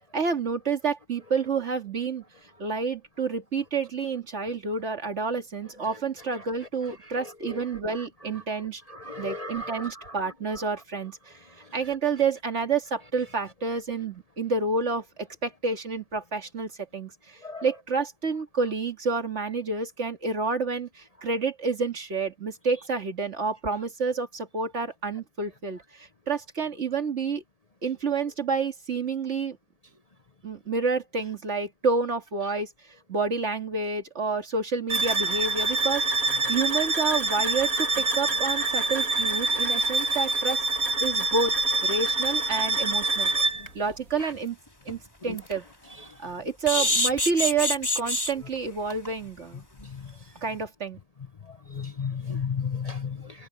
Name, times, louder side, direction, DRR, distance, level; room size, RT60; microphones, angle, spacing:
voice 1, 0.1-2.2 2.6-8.8 9.2-11.4 11.7-27.4 27.8-29.6 30.4-32.7 33.1-40.6 41.0-41.5 41.8-43.3 43.7-44.6 44.9-45.6 46.2-49.6 50.4-51.0, right 4 dB, 55° right, 2.4 m, -29 dB
voice 2, 9.1-9.8 17.4-17.6 51.8-53.2, left 6 dB, 30° left, 0.9 m, -32 dB
sound 1, 34.9-43.7, right 3 dB, 80° right, 3.5 m, -26 dB
sound 2, 44.3-44.4 44.9-45.0 45.3-45.5 46.7-48.3 48.9-49.1 49.4-49.5 49.8-49.9, left 1 dB, 15° left, 3.5 m, -25 dB
omnidirectional pair, 1.5 m